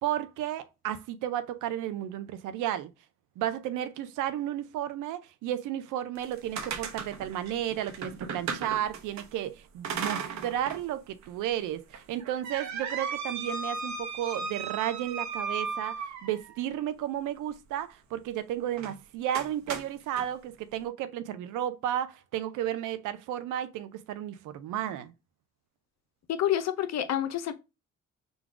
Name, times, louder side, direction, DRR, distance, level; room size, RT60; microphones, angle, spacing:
voice 1, 0.0-2.9 3.4-25.1, right 11 dB, 90° right, 0.6 m, -33 dB
sound 1, 6.2-9.3 9.8-10.8 11.2-11.3 11.9-16.6 18.7-19.0 19.3-20.3, right 5 dB, 65° right, 0.9 m, -36 dB
voice 2, 26.3-27.5, left 11 dB, 60° left, 0.7 m, -28 dB
3.9 x 2.3 x 4.6 m
cardioid pair, 90°, 30 cm